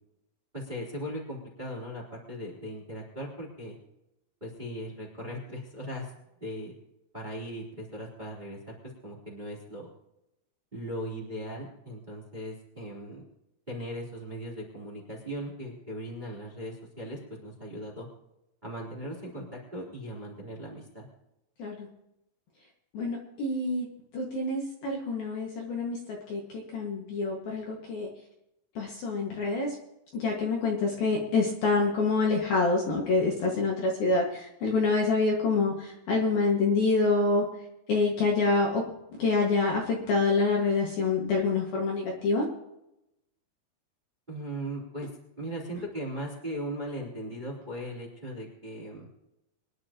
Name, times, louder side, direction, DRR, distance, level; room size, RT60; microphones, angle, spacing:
voice 1, 0.5-3.7 4.4-6.1 6.4-6.7 7.1-8.7 9.0-9.9 10.7-13.2 13.7-18.1 18.6-21.1 44.3-45.1 45.4-49.1, equal, 10° right, -3 dB, 2.8 m, -38 dB
voice 2, 22.9-23.9 24.1-26.4 26.7-28.1 28.8-29.7 30.1-37.5 37.9-38.8 39.2-42.4, left 3 dB, 55° left, -2 dB, 3.2 m, -26 dB
24.5 x 11.0 x 3.0 m, 0.87 s
omnidirectional pair, 5.8 m